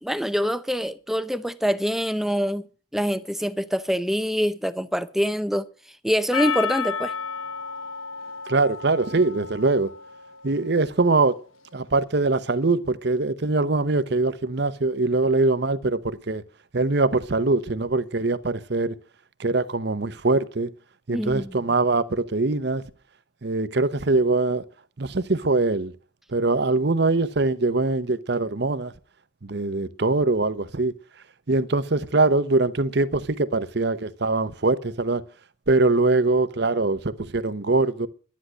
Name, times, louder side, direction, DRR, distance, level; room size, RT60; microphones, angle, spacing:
voice 1, 0.0-2.7 2.9-5.7 6.0-7.1 21.1-21.6, equal, ahead, 0.5 m, -25 dB
Percussion, 6.3-10.6, left 6 dB, 85° left, 1.1 m, -32 dB
voice 2, 8.5-9.9 10.4-11.4 11.7-16.4 16.7-19.0 19.4-20.7 21.1-22.8 23.4-24.6 25.0-25.9 26.3-28.9 29.4-30.9 31.5-35.2 35.7-38.1, right 3 dB, 55° right, 0.8 m, -22 dB
11.0 x 10.5 x 6.3 m
head